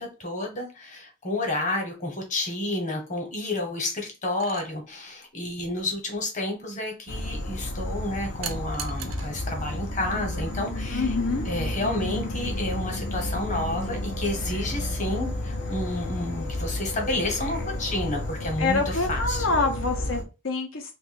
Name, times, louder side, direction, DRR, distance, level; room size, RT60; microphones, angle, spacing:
voice 1, 0.0-11.1 11.4-19.4, left 1 dB, 40° left, 2 dB, 1.1 m, -30 dB
sound 1, 4.4-4.7 8.4-9.3 10.7-10.9, right 8 dB, 85° right, 0.5 m, -37 dB
Insect / Frog, 7.1-20.2, left 1 dB, 60° left, 0.7 m, -31 dB
voice 2, 10.9-11.5 18.6-21.0, left 3 dB, 85° left, 4 dB, 0.9 m, -26 dB
2.7 x 2.5 x 4.1 m, 0.30 s
head